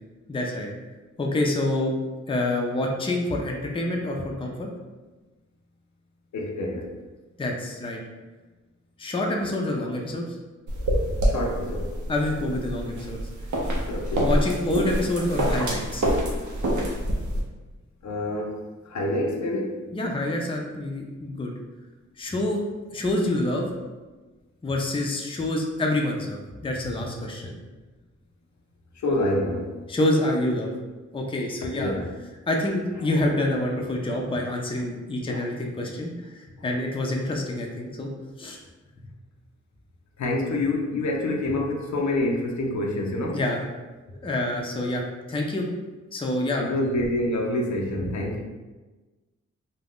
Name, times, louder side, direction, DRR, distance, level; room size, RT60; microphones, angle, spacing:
voice 1, 0.3-0.7 1.2-2.0 2.3-4.7 7.4-8.0 9.0-10.2 12.1-13.3 14.2-16.0 19.9-21.5 22.2-22.6 22.9-23.7 24.6-27.5 29.9-30.7 31.1-31.9 32.5-36.1 36.3-38.1 38.4-38.6 43.3-43.6 44.2-45.7 46.1-46.7, left 1 dB, 20° left, 0 dB, 0.4 m, -27 dB
voice 2, 6.3-6.9 11.2-12.0 13.9-14.3 18.0-19.8 28.9-29.8 31.7-32.1 35.3-35.4 40.2-43.4 46.6-48.4, left 1 dB, 70° left, 1 dB, 0.5 m, -27 dB
sound 1, 10.7-17.4, equal, 80° right, 0.6 m, -26 dB
2.5 x 2.2 x 3.4 m, 1.2 s
cardioid pair, 70°, 30 cm